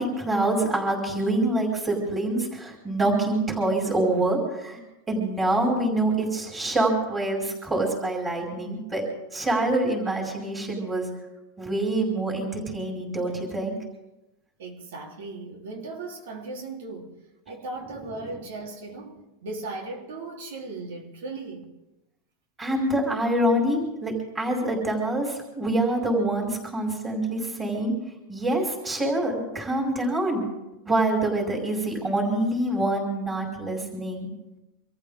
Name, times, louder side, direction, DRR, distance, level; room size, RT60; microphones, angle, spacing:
voice 1, 0.0-4.8 5.1-9.0 9.3-11.1 11.6-13.8 22.6-27.9 28.3-30.4 30.8-34.3, right 1 dB, 15° right, 5.5 m, -26 dB
voice 2, 14.6-17.1 17.5-21.7, right 3 dB, 80° right, 3.8 m, -37 dB
26.0 x 14.5 x 3.8 m
supercardioid pair, 155°, 0 cm